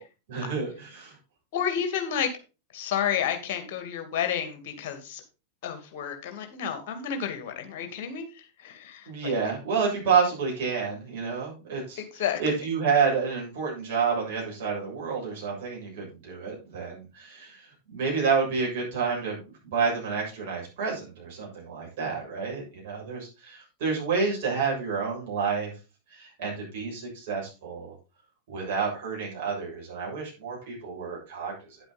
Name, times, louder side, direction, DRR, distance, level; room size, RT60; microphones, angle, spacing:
voice 1, 0.3-1.2 9.1-19.4 19.7-25.7 26.1-27.9 28.5-31.8, right 5 dB, 50° right, -3 dB, 7.0 m, -29 dB
voice 2, 1.5-2.3 2.7-5.2 5.6-8.3 8.6-9.3 12.2-12.4, left 8 dB, 50° left, 6 dB, 2.5 m, -30 dB
9.7 x 7.8 x 4.2 m, 0.30 s
figure-of-eight pair, 90°, 0 cm